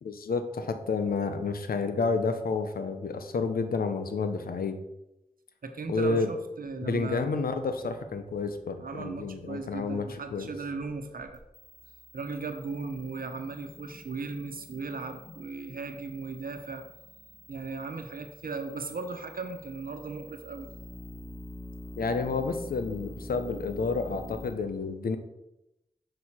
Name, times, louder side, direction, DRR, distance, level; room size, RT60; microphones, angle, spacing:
voice 1, 0.0-4.8 5.9-6.3 6.8-10.5 22.0-25.2, left 4 dB, 90° left, 8 dB, 0.7 m, -30 dB
voice 2, 5.6-7.4 8.8-11.4 12.1-16.8 17.5-20.7, right 4 dB, 75° right, 6 dB, 1.0 m, -37 dB
sound 1, 11.3-24.5, left 1 dB, 60° left, 1.7 m, -48 dB
6.5 x 6.4 x 4.3 m, 0.93 s
cardioid pair, 40°, 15 cm